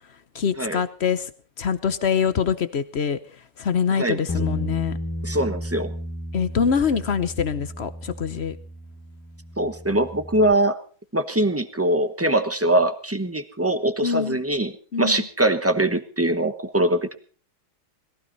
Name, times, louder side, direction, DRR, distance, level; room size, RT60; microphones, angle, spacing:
voice 1, 0.3-1.3 1.6-3.2 3.6-5.0 6.3-8.6 14.0-14.4 14.9-15.3, left 6 dB, 55° left, 12 dB, 0.7 m, -24 dB
Bass guitar, 4.3-10.5, left 1 dB, 10° left, 1.2 m, -33 dB
voice 2, 5.2-5.9 9.6-10.8 11.1-14.7 15.0-17.1, right 1 dB, 15° right, 10 dB, 0.5 m, -22 dB
21.5 x 16.0 x 4.1 m, 0.40 s
omnidirectional pair, 2.3 m